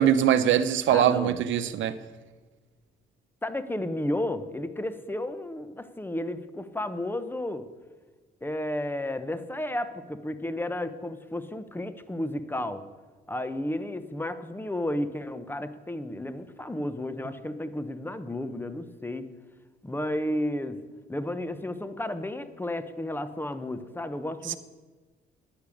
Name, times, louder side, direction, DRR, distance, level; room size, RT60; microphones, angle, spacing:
voice 1, 0.0-1.9 24.5-24.6, right 10 dB, 75° right, 0.9 m, -22 dB
voice 2, 0.9-1.4 3.4-7.6 8.4-12.8 13.3-19.3 19.8-20.8 21.1-24.6, left 1 dB, 10° left, 1.1 m, -32 dB
11.5 x 10.5 x 8.6 m
cardioid pair, 90°, 20 cm